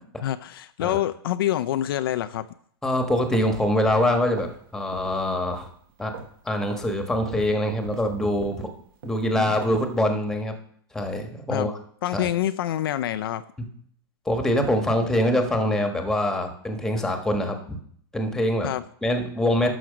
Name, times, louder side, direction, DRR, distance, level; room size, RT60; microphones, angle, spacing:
voice 1, 0.2-2.5 9.3-9.6 11.5-11.7 12.0-13.4 18.6-18.8, left 12 dB, 65° left, 12 dB, 0.5 m, -26 dB
voice 2, 2.8-5.7 6.0-6.1 6.4-8.7 9.0-10.5 10.9-11.7 12.1-12.3 13.6-13.7 14.2-17.8 18.1-18.7 19.0-19.7, left 1 dB, 5° left, 5 dB, 1.3 m, -24 dB
sound 1, 3.1-4.7 4.9-5.2 5.5-6.4 6.7-6.9 7.3-10.0, right 6 dB, 60° right, 1.3 m, -41 dB
12.5 x 6.0 x 5.1 m, 0.62 s
hypercardioid pair, 145°, 13 cm